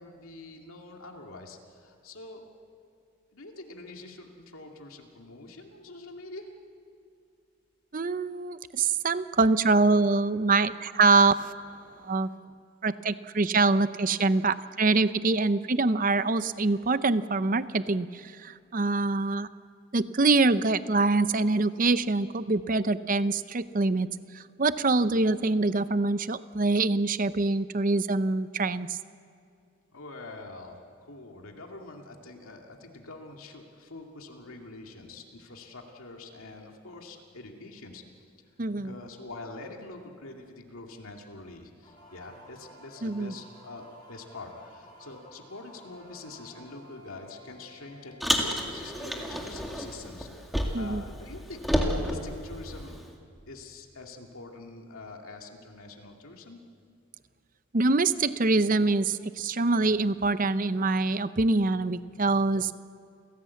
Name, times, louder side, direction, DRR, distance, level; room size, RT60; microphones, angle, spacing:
voice 1, 0.0-2.5 3.3-6.5 29.9-38.2 38.8-53.0 53.5-56.6, left 2 dB, 75° left, 2 dB, 2.3 m, -45 dB
voice 2, 7.9-11.3 12.0-12.3 12.8-19.5 19.9-24.1 24.3-29.0 38.6-38.9 43.0-43.3 50.7-51.0 57.7-62.7, right 3 dB, 40° right, 13 dB, 0.6 m, -25 dB
sound 1, 41.8-49.4, left 1 dB, 20° left, 5.9 m, -53 dB
Car, 48.2-51.0 51.3-53.1, equal, ahead, 2.1 m, -30 dB
29.5 x 16.5 x 8.4 m, 2.4 s
head